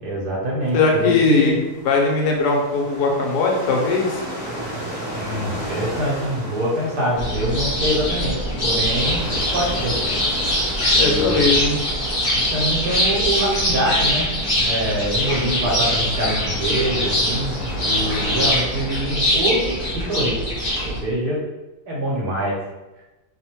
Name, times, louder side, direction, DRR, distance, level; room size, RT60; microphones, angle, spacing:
voice 1, 0.0-1.6 5.1-9.2 9.5-9.9 10.9-11.5 12.3-14.3 14.6-20.5 20.8-21.4 21.9-22.6, right 1 dB, 75° right, -4 dB, 1.2 m, -24 dB
sound 1, 0.6-18.5, right 1 dB, 15° right, 0.8 m, -35 dB
voice 2, 0.7-1.5 1.8-4.2 10.9-11.8, left 3 dB, 80° left, 1 dB, 1.1 m, -19 dB
sound 2, 7.2-21.0, equal, 40° left, 0.8 m, -22 dB
2.8 x 2.0 x 2.8 m, 1.1 s
omnidirectional pair, 1.7 m